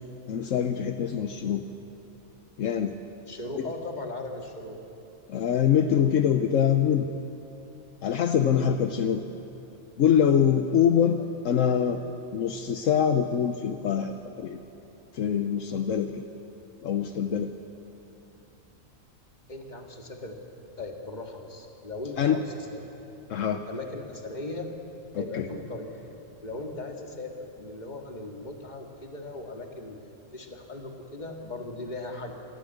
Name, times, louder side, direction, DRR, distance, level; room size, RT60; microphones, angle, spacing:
voice 1, 0.3-1.6 2.6-3.0 3.6-3.7 5.3-7.1 8.0-9.2 10.0-11.2 11.4-12.0 12.3-14.6 15.1-16.2 16.8-17.5 22.2-22.4 23.3-23.6 25.1-25.4, left 8 dB, 75° left, 7 dB, 1.1 m, -24 dB
voice 2, 3.3-4.8 8.4-8.7 11.2-11.3 19.5-20.4 20.8-22.8 23.7-24.7 25.2-26.0 26.4-30.0 30.3-32.3, left 2 dB, 35° left, 2 dB, 2.1 m, -38 dB
27.5 x 13.5 x 7.9 m, 2.9 s
omnidirectional pair, 1.4 m